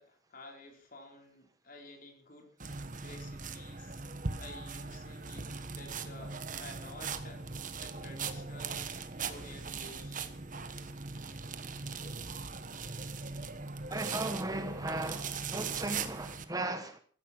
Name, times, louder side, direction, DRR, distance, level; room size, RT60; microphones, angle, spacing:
voice 1, 0.0-2.5 3.0-4.0 4.4-5.5 5.8-7.4 7.8-8.9 9.2-10.2, left 2 dB, 40° left, 4.6 m, -51 dB
sound 1, 2.6-16.4, right 4 dB, 40° right, 1.3 m, -40 dB
voice 2, 13.9-17.0, right 2 dB, 15° right, 1.2 m, -36 dB
15.0 x 14.5 x 5.9 m
head